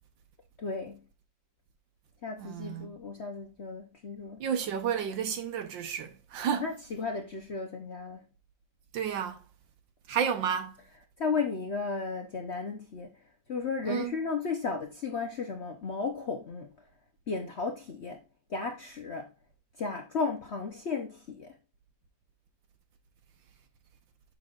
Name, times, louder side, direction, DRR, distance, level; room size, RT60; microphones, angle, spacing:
voice 1, 0.6-1.0 2.2-4.4 6.5-8.2 11.2-13.1 13.5-16.7 17.3-18.2 18.5-19.3 19.8-21.5, left 4 dB, 55° left, 0.8 m, -34 dB
voice 2, 2.4-2.9 4.4-6.8 8.9-9.4 10.1-10.8 13.8-14.2, right 8 dB, 75° right, 1.6 m, -31 dB
7.9 x 6.1 x 2.4 m
omnidirectional pair, 2.1 m